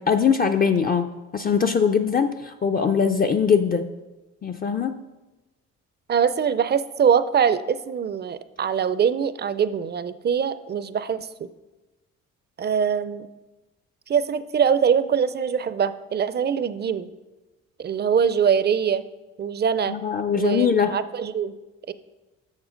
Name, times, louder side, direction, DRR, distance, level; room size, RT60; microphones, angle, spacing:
voice 1, 0.0-3.9 4.4-5.0 19.9-21.0, left 6 dB, 30° left, 5 dB, 0.4 m, -22 dB
voice 2, 6.1-11.5 12.6-13.3 14.1-17.1 17.8-19.0 19.4-20.0 20.3-21.5 21.9-22.0, right 7 dB, 35° right, 14 dB, 0.4 m, -23 dB
7.3 x 6.5 x 5.1 m, 1.1 s
cardioid pair, 90°, 30 cm